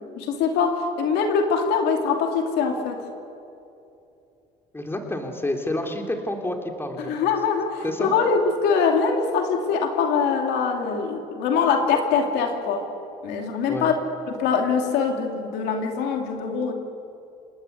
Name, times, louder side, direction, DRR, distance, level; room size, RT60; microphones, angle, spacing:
voice 1, 0.2-3.0 7.0-12.9 13.2-13.9 14.3-16.7, left 5 dB, 85° left, 3 dB, 2.8 m, -23 dB
voice 2, 4.7-7.1 7.8-8.1 13.7-13.9, left 1 dB, 15° left, 3 dB, 3.4 m, -29 dB
29.0 x 18.5 x 8.3 m, 2.8 s
cardioid pair, 110°, 17 cm